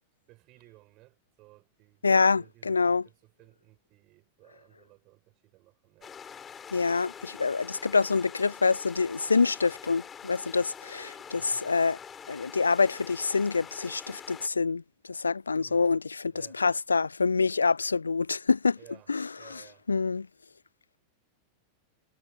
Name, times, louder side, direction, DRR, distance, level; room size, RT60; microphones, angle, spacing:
voice 1, 0.3-6.2 11.3-11.7 15.6-15.9 16.3-16.6 18.8-19.9, right 20 dB, 40° right, 4.9 m, -58 dB
voice 2, 2.0-3.0 6.7-12.0 12.3-14.8 15.1-18.8 19.1-19.3 19.9-20.3, left 4 dB, 75° left, 0.3 m, -26 dB
sound 1, 6.0-14.5, left 7 dB, 20° left, 3.8 m, -45 dB
figure-of-eight pair, 90°, 0 cm